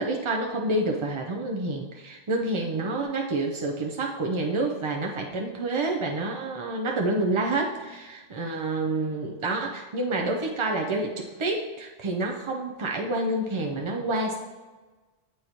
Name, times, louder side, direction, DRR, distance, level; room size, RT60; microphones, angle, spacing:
voice 1, 0.0-14.4, right 2 dB, 50° right, 0 dB, 0.3 m, -28 dB
7.7 x 4.6 x 2.9 m, 1.3 s
omnidirectional pair, 1.2 m